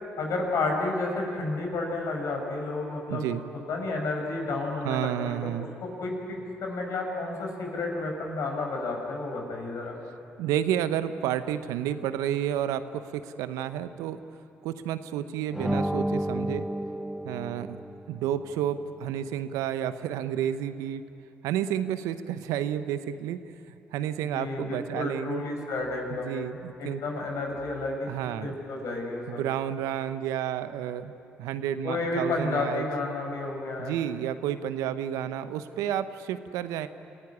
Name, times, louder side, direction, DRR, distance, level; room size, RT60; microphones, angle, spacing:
voice 1, 0.1-3.3 3.5-5.5 5.8-10.0 24.3-26.4 26.8-28.1 28.4-29.4 31.8-33.9, left 2 dB, 65° left, 1 dB, 5.8 m, -31 dB
voice 2, 3.1-3.4 4.8-5.7 10.4-14.2 14.6-16.6 17.2-17.8 18.1-21.0 21.4-23.4 23.9-25.4 26.1-27.0 28.1-28.5 29.3-31.1 31.4-32.9 33.8-36.9, right 10 dB, 75° right, 12 dB, 0.9 m, -30 dB
sound 1, 15.5-18.2, right 1 dB, 5° right, 0.9 m, -31 dB
27.5 x 16.0 x 10.0 m, 2.7 s
hypercardioid pair, 50°, 6 cm